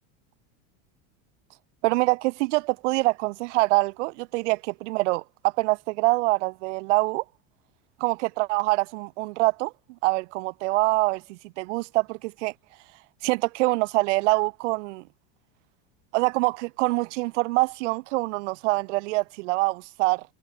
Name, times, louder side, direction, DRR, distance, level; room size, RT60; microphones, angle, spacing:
voice 1, 1.8-7.2 8.0-9.7 10.0-12.5 13.2-15.0 16.1-20.2, right 23 dB, 75° right, 0.7 m, -25 dB
cardioid pair, 175°, 36 cm